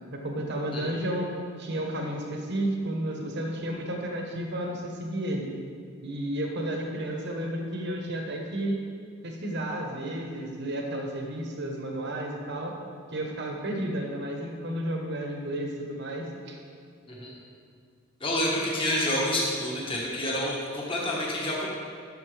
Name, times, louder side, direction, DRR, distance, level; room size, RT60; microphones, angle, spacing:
voice 1, 0.1-1.3 1.6-5.5 6.0-8.8 9.2-12.7 13.1-16.6, right 1 dB, 55° right, 1 dB, 1.1 m, -32 dB
voice 2, 18.2-21.7, left 1 dB, 25° left, -4 dB, 1.5 m, -28 dB
12.0 x 6.7 x 3.4 m, 2.2 s
head